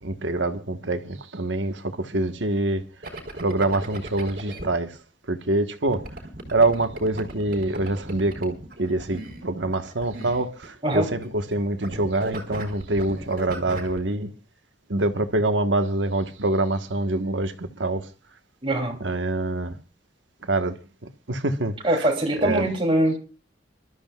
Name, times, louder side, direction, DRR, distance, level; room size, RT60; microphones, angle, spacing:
voice 1, 0.0-2.8 3.4-5.0 5.3-6.0 6.5-14.3 14.9-18.1 19.0-19.8 20.4-20.8 21.3-22.1 22.4-22.7, right 2 dB, 90° right, 1.4 m, -25 dB
sound 1, 3.0-4.7 5.9-11.0 11.2-11.6 11.8-14.0, right 1 dB, 55° right, 3.7 m, -37 dB
voice 2, 18.6-19.0 21.8-23.2, right 1 dB, 30° right, 3.1 m, -22 dB
28.5 x 13.0 x 2.4 m
head